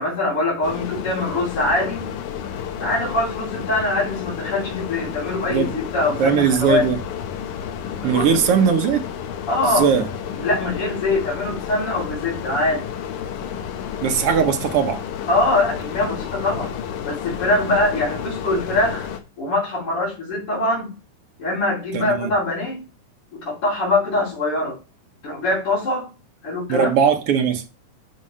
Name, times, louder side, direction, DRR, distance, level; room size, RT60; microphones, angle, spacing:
voice 1, 0.0-2.0 2.8-6.9 8.0-8.4 8.6-8.7 9.5-9.9 10.3-12.8 14.3-14.5 15.3-16.7 17.0-19.1 19.4-20.9 21.4-22.8 23.3-24.8 25.2-26.1 26.4-27.0, left 2 dB, 45° left, 4.0 m, -23 dB
sound 1, 0.6-19.2, left 8 dB, 80° left, 2.4 m, -31 dB
voice 2, 6.2-7.0 8.0-9.0 9.6-10.1 14.0-15.0 21.9-22.3 26.7-27.6, right 7 dB, 65° right, 1.5 m, -19 dB
11.5 x 4.8 x 3.2 m
omnidirectional pair, 3.5 m